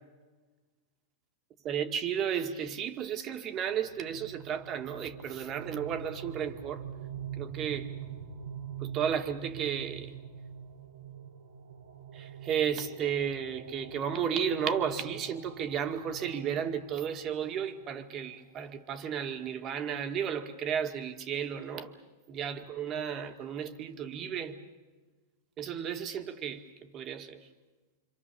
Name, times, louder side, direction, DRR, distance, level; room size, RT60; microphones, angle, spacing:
voice 1, 1.6-6.8 7.4-7.9 8.8-10.1 12.1-21.9 22.3-24.6 25.6-27.5, right 8 dB, 35° right, 2.0 m, -33 dB
sound 1, 3.6-18.3, right 8 dB, 80° right, 3.0 m, -44 dB
27.0 x 26.0 x 7.1 m
hypercardioid pair, 115°, 0 cm